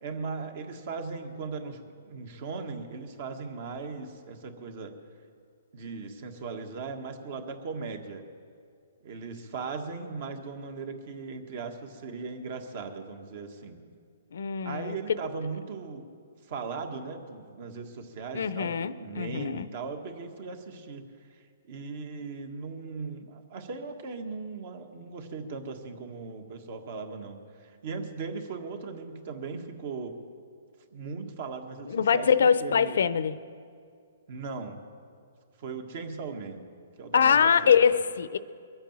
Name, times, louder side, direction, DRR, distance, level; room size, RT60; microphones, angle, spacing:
voice 1, 0.0-4.9 5.7-8.2 9.0-13.8 14.6-16.1 16.5-21.0 21.3-30.2 30.9-33.0 34.3-34.8 35.6-36.6 37.0-37.9, right 4 dB, 50° right, 6 dB, 1.6 m, -38 dB
voice 2, 14.3-15.2 18.3-19.7 31.9-33.4 37.1-38.4, left 7 dB, 75° left, 15 dB, 0.7 m, -23 dB
22.0 x 8.9 x 7.4 m, 2.2 s
hypercardioid pair, 155°, 0 cm